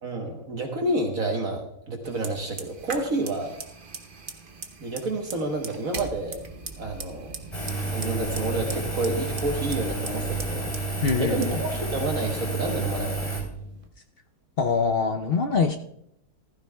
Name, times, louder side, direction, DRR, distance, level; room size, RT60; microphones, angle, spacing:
voice 1, 0.0-3.6 4.8-6.4 6.8-7.3 7.9-10.7 11.2-13.3, right 2 dB, 60° right, 2 dB, 1.7 m, -29 dB
Fire, 2.0-13.9, right 4 dB, 40° right, 1.0 m, -41 dB
Engine, 7.5-13.4, right 3 dB, 20° left, 3.1 m, -30 dB
voice 2, 11.0-11.5 14.6-15.8, left 5 dB, 55° left, 6 dB, 0.7 m, -23 dB
15.5 x 14.5 x 2.3 m, 0.74 s
omnidirectional pair, 1.7 m